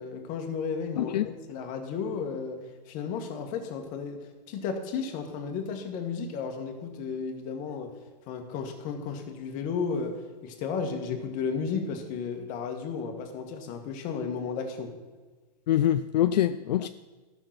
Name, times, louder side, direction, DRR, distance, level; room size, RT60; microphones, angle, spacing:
voice 1, 0.0-7.9 8.3-14.9, left 5 dB, 40° left, 4 dB, 1.6 m, -33 dB
voice 2, 1.0-1.3 15.7-16.9, left 11 dB, 75° left, 11 dB, 0.4 m, -24 dB
12.5 x 6.0 x 5.9 m, 1.3 s
hypercardioid pair, 135°, 21 cm